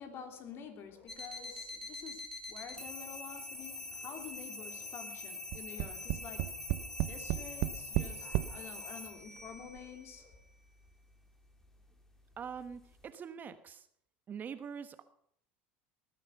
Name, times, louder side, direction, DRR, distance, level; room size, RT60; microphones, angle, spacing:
voice 1, 0.0-10.4, left 6 dB, 45° left, 6 dB, 3.3 m, -49 dB
sound 1, 1.1-13.1, left 2 dB, 5° left, 2.5 m, -46 dB
Tap, 5.5-8.6 9.4-9.5 9.8-9.9, right 17 dB, 60° right, 0.7 m, -33 dB
voice 2, 12.4-13.9 14.3-15.0, right 7 dB, 30° right, 11 dB, 1.2 m, -44 dB
19.0 x 9.5 x 6.6 m, 0.68 s
supercardioid pair, 100°, 6 cm